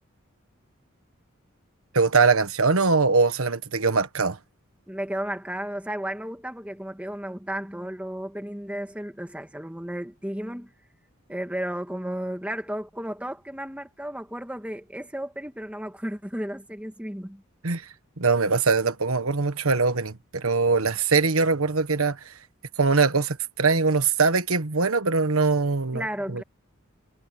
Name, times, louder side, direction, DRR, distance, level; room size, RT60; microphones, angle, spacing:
voice 1, 1.9-4.4 17.6-17.9 18.2-22.3 22.8-26.4, right 4 dB, 85° right, 1.4 m, -22 dB
voice 2, 4.9-10.7 11.3-17.4 25.9-26.4, right 1 dB, 5° right, 1.5 m, -33 dB
head